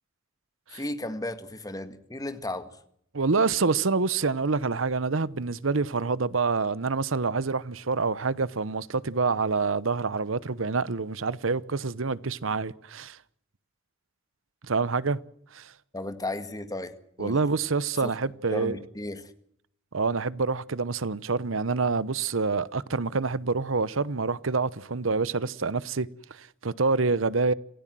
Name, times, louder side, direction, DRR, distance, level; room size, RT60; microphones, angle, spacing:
voice 1, 0.7-2.7 15.9-17.4 18.0-18.1 18.5-19.3, left 1 dB, 20° left, 1.8 m, -35 dB
voice 2, 3.1-13.2 14.7-15.2 15.5-15.7 17.2-18.8 19.9-27.5, right 4 dB, 90° right, 0.9 m, -27 dB
27.0 x 16.5 x 7.7 m
head